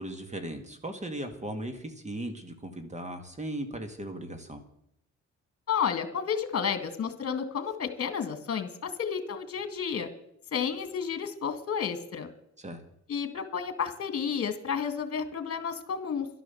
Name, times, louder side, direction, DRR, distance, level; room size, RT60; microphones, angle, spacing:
voice 1, 0.0-4.6 12.6-12.8, right 1 dB, 25° right, 8 dB, 2.0 m, -37 dB
voice 2, 5.7-10.1 10.5-12.3 13.1-16.3, left 7 dB, 50° left, 9 dB, 2.1 m, -31 dB
12.0 x 11.0 x 7.1 m, 0.76 s
cardioid pair, 90°, 30 cm